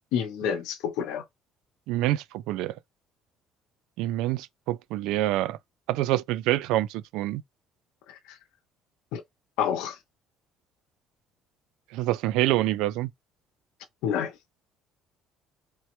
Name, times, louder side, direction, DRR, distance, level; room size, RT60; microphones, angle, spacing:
voice 1, 0.1-1.2 8.1-8.4 9.1-9.2 9.6-10.0 14.0-14.3, left 8 dB, 90° left, 0.5 m, -29 dB
voice 2, 1.9-2.8 4.0-5.6 5.9-7.4 11.9-13.1, right 15 dB, 90° right, 0.3 m, -26 dB
3.2 x 2.1 x 2.9 m
cardioid pair, 160°, 0 cm